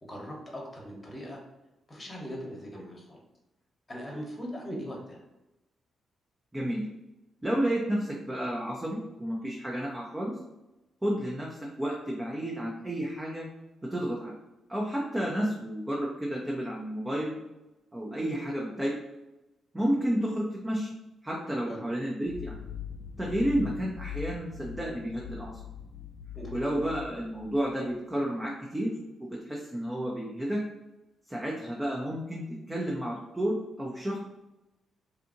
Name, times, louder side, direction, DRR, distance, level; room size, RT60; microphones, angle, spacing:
voice 1, 0.0-1.4 1.9-3.2 3.9-5.2 21.7-21.8 26.3-26.7, equal, 25° left, -1 dB, 1.0 m, -40 dB
voice 2, 6.5-6.8 7.4-10.3 11.0-13.5 13.8-14.3 14.7-17.3 17.9-19.0 19.7-20.9 21.2-22.6 23.2-25.5 26.5-28.9 29.2-30.6 31.3-34.2, right 1 dB, 15° right, -3 dB, 0.6 m, -31 dB
sound 1, 22.3-27.9, left 9 dB, 50° left, 0.6 m, -42 dB
2.7 x 2.5 x 2.5 m, 0.97 s
hypercardioid pair, 45°, 0 cm